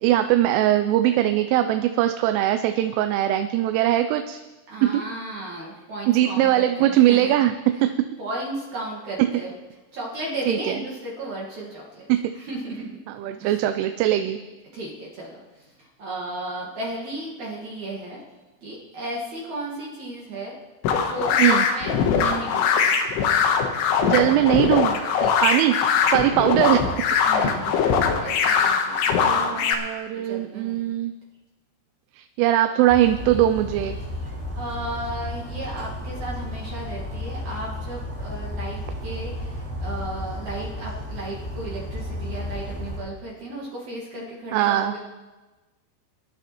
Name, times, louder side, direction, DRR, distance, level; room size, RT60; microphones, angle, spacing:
voice 1, 0.0-4.4 4.8-5.1 6.1-8.0 9.2-9.4 10.5-10.8 12.1-12.3 13.1-14.4 21.4-21.7 24.0-25.8 26.1-26.9 29.2-31.1 32.1-34.0 44.5-45.0, right 13 dB, 90° right, 8 dB, 3.1 m, -21 dB
voice 2, 4.7-7.3 8.2-9.5 9.9-12.1 12.4-12.9 13.4-13.6 14.7-18.2 18.6-20.5 20.9-23.0 27.3-27.8 28.2-29.6 30.1-30.9 34.3-45.0, right 1 dB, 55° right, -4 dB, 2.3 m, -34 dB
sound 1, 20.8-29.7, left 6 dB, 75° left, 3.2 m, -21 dB
Bird vocalization bird call bird song, 32.9-43.0, left 1 dB, ahead, 4.8 m, -33 dB
23.0 x 11.5 x 3.0 m, 1.2 s
omnidirectional pair, 5.5 m